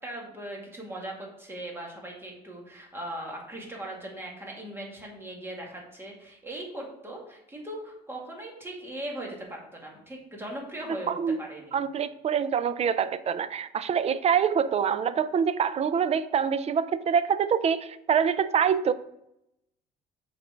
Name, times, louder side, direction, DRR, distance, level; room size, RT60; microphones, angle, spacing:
voice 1, 0.0-11.8, right 1 dB, 15° right, -1 dB, 2.1 m, -39 dB
voice 2, 11.1-11.4 11.7-18.9, right 7 dB, 40° right, 14 dB, 0.4 m, -25 dB
6.6 x 4.1 x 5.0 m, 0.80 s
cardioid pair, 110°, 17 cm